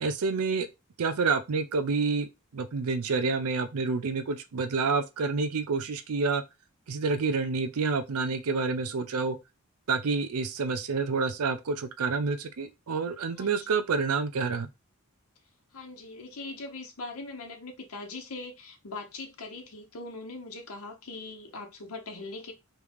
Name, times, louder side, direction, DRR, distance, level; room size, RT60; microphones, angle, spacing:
voice 1, 0.0-0.7 1.0-6.4 6.9-9.4 9.9-14.7, right 4 dB, 90° right, 0.5 m, -28 dB
voice 2, 13.4-13.8 15.7-22.5, left 3 dB, 85° left, 0.9 m, -41 dB
3.7 x 3.1 x 3.5 m
head